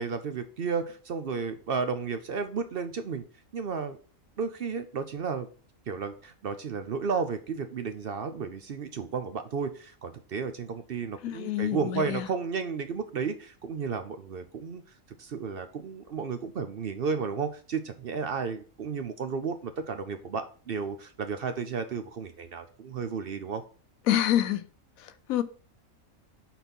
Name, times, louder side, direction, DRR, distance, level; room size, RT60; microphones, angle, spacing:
voice 1, 0.0-3.2 3.5-4.0 4.4-5.5 5.9-14.8 15.2-23.6, right 5 dB, 55° right, 0.7 m, -33 dB
voice 2, 11.2-12.3 24.1-24.6 25.0-25.4, left 12 dB, 90° left, 1.1 m, -27 dB
6.0 x 4.2 x 5.3 m
omnidirectional pair, 1.4 m